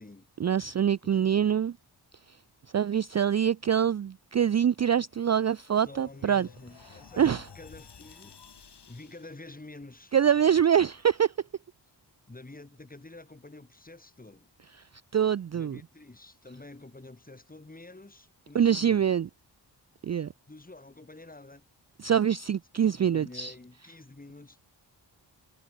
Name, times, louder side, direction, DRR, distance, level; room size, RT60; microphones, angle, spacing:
voice 1, 0.4-1.8 2.7-6.5 7.2-7.5 10.1-11.3 15.1-15.8 18.5-19.3 20.0-20.3 22.0-23.5, right 8 dB, 40° right, 0.4 m, -25 dB
voice 2, 1.0-1.4 5.8-10.2 12.3-14.5 15.5-19.1 20.5-21.7 23.0-24.6, left 2 dB, 20° left, 5.4 m, -48 dB
sound 1, 4.9-9.4, left 6 dB, 65° left, 5.1 m, -53 dB
wide cardioid pair, 160°, 43 cm